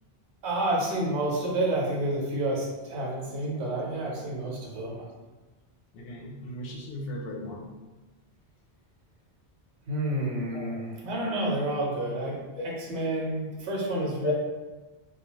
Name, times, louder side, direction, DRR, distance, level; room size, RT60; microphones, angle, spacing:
voice 1, 0.4-5.1 9.9-14.3, right 1 dB, 85° right, -3 dB, 1.0 m, -29 dB
voice 2, 5.9-7.7 10.5-10.8 12.6-12.7 14.2-14.3, left 3 dB, 65° left, 0 dB, 0.7 m, -37 dB
2.3 x 2.2 x 3.0 m, 1.2 s
omnidirectional pair, 1.1 m